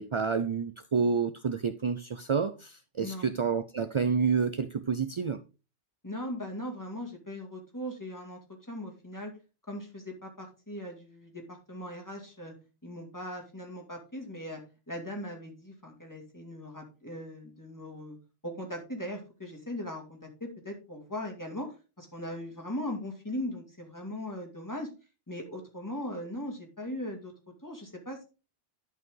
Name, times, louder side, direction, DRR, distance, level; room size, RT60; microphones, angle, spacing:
voice 1, 0.0-5.4, right 5 dB, 50° right, 0.3 m, -29 dB
voice 2, 6.0-8.4 8.7-9.3 9.7-12.5 12.8-14.6 14.9-18.2 18.4-24.9 25.3-27.3 27.6-28.2, left 1 dB, 15° left, 2.3 m, -39 dB
11.0 x 5.5 x 3.8 m
omnidirectional pair, 1.1 m